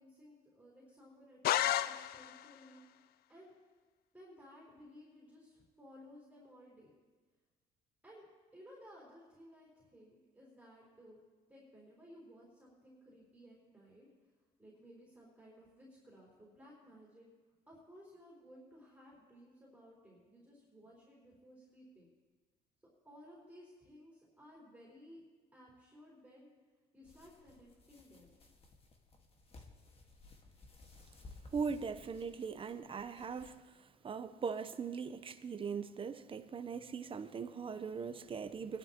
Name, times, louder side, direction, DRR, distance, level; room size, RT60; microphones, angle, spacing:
voice 1, 0.0-3.5 4.1-6.9 8.0-8.3 8.5-11.2 11.5-14.1 14.6-17.3 17.7-22.1 23.0-25.2 25.5-26.5 26.9-28.3, equal, 10° right, 4.1 m, -58 dB
sound 1, 1.4-2.5, left 12 dB, 65° left, 0.4 m, -32 dB
sound 2, 27.0-33.5, left 3 dB, 35° left, 1.7 m, -58 dB
voice 2, 31.5-33.5 34.0-38.8, right 5 dB, 30° right, 0.8 m, -40 dB
22.5 x 11.0 x 3.0 m
cardioid pair, 110°, 17 cm